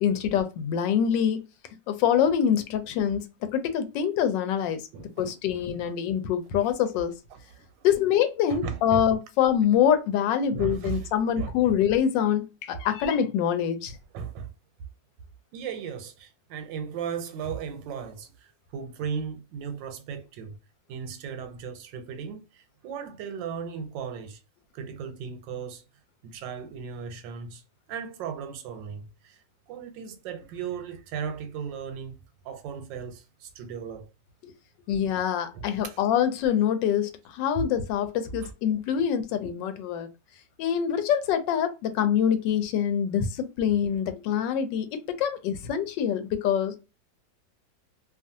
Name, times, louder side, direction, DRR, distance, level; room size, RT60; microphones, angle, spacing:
voice 1, 0.0-1.4 1.9-4.8 5.2-7.1 7.8-14.0 34.9-40.1 40.6-46.8, left 9 dB, 85° left, 1.2 m, -25 dB
voice 2, 4.9-5.9 7.3-7.9 8.5-9.1 10.5-11.1 11.4-11.7 14.1-14.5 15.5-20.6 20.9-24.4 24.7-25.8 26.2-27.6 27.9-29.4 29.7-34.1 35.5-36.0 37.5-37.6 38.3-38.5, right 7 dB, 90° right, 1.3 m, -36 dB
2.9 x 2.4 x 2.6 m
omnidirectional pair, 1.9 m